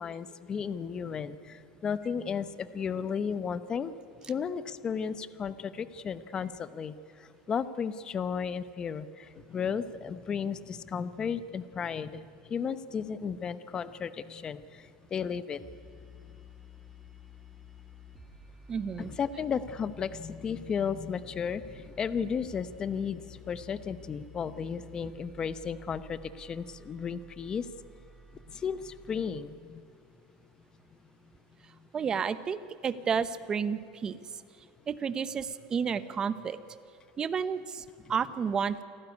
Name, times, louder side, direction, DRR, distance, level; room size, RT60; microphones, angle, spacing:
voice 1, 0.0-3.9 4.3-6.9 7.5-12.2 12.5-15.6 19.0-27.7 28.5-29.8, left 6 dB, 25° left, 14 dB, 0.9 m, -34 dB
sound 1, 15.6-29.3, left 3 dB, 5° right, 2.6 m, -52 dB
voice 2, 18.7-19.1 31.9-32.6 32.8-34.2 34.9-36.6 37.2-38.8, right 6 dB, 25° right, 14 dB, 0.9 m, -31 dB
28.0 x 12.5 x 9.7 m, 2.5 s
supercardioid pair, 140°, 3 cm